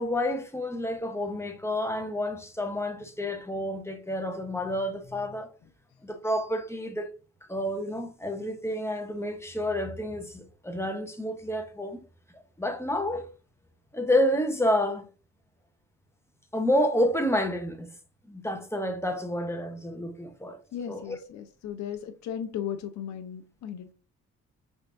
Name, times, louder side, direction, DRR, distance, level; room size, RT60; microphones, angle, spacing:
voice 1, 0.0-5.5 6.0-7.1 7.5-12.0 12.3-13.3 13.9-15.0 16.5-17.9 18.3-20.6 20.9-21.0, left 1 dB, 10° left, 0.9 m, -29 dB
voice 2, 20.7-23.9, left 9 dB, 65° left, 0.7 m, -36 dB
5.5 x 3.5 x 2.6 m
cardioid pair, 90°, 30 cm